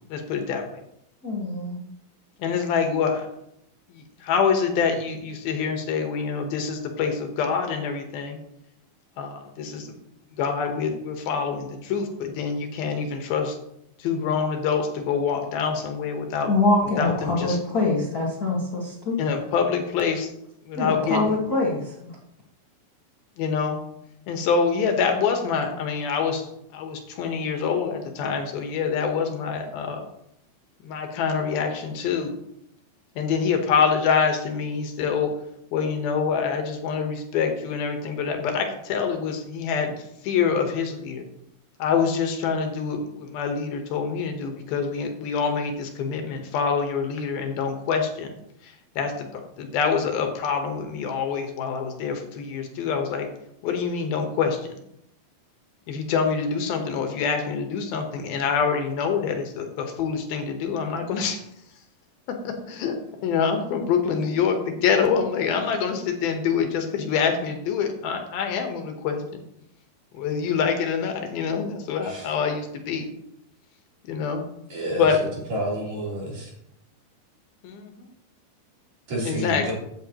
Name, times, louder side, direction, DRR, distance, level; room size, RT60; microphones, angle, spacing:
voice 1, 0.1-0.6 2.4-3.3 3.9-8.4 9.2-9.9 10.4-13.6 14.0-16.5 17.0-17.6 19.2-20.3 20.7-21.3 23.4-23.8 24.3-30.0 30.8-32.3 33.2-35.3 35.7-41.3 41.8-48.3 48.6-53.3 53.6-54.6 55.9-61.4 62.3-63.0 63.2-69.4 70.1-73.1 74.1-74.4 75.0-75.2 77.6-78.1 79.2-79.7, left 6 dB, 75° left, 4 dB, 2.9 m, -26 dB
voice 2, 1.2-1.8 16.5-19.2 20.7-22.1, left 2 dB, 45° left, -4 dB, 1.2 m, -24 dB
voice 3, 74.7-75.1 75.5-76.5 79.1-79.7, right 1 dB, 45° right, -5 dB, 4.6 m, -29 dB
14.0 x 8.4 x 2.9 m, 0.78 s
omnidirectional pair, 4.5 m